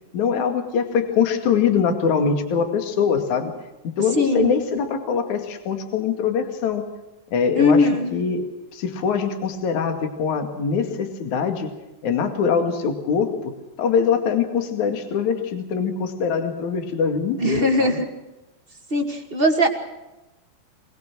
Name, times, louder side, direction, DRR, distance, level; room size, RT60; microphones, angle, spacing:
voice 1, 0.1-3.5 4.0-6.9 7.3-11.7 12.0-13.5 13.8-18.0, left 6 dB, 50° left, 6 dB, 3.3 m, -23 dB
voice 2, 4.2-4.5 7.5-8.1 17.4-18.1 18.9-19.7, left 1 dB, 25° right, 3 dB, 1.2 m, -19 dB
24.0 x 20.5 x 6.2 m, 1.0 s
omnidirectional pair, 4.6 m